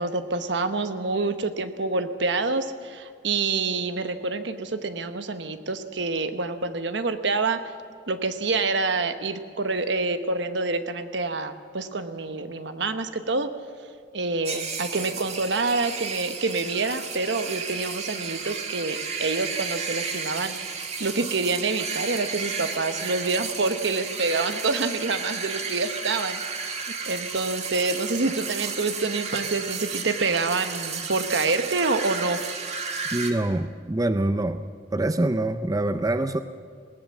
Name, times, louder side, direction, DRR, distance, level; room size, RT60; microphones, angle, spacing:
voice 1, 0.0-7.6 8.1-13.5 14.1-26.4 26.7-26.8 27.1-32.4, right 3 dB, 70° right, 9 dB, 1.1 m, -27 dB
sound 1, 14.4-33.3, right 5 dB, 35° right, 1.8 m, -33 dB
voice 2, 33.1-34.6 34.9-36.4, right 1 dB, 20° right, 10 dB, 0.5 m, -25 dB
20.0 x 18.0 x 7.4 m, 2.1 s
head